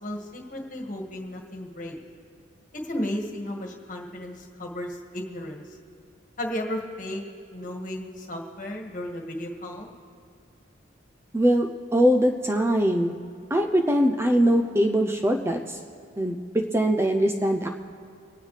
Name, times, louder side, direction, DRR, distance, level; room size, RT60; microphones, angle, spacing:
voice 1, 0.0-1.9 2.7-5.7 6.4-7.2 7.5-9.9, left 1 dB, 40° left, 1 dB, 1.7 m, -34 dB
voice 2, 11.3-13.1 13.5-15.8 16.2-17.7, equal, 15° right, 2 dB, 0.5 m, -22 dB
25.0 x 9.4 x 3.3 m, 2.6 s
head